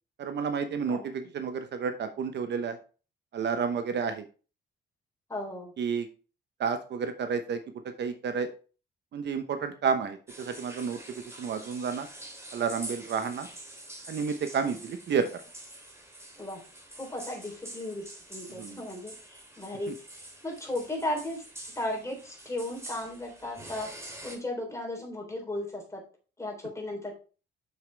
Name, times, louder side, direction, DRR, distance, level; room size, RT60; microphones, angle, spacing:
voice 1, 0.2-2.8 3.3-4.2 5.8-6.1 6.6-8.5 9.1-12.1 12.5-13.5 14.1-15.4 18.6-18.8, right 6 dB, 60° right, 8 dB, 0.9 m, -31 dB
voice 2, 5.3-5.7 14.6-14.8 16.4-16.6 17.0-21.4 21.8-26.0 26.4-27.1, left 1 dB, 15° left, 0 dB, 3.6 m, -36 dB
sound 1, 10.3-24.4, right 1 dB, 15° right, 3.3 m, -46 dB
7.1 x 6.6 x 3.4 m, 0.36 s
cardioid pair, 90°, 20 cm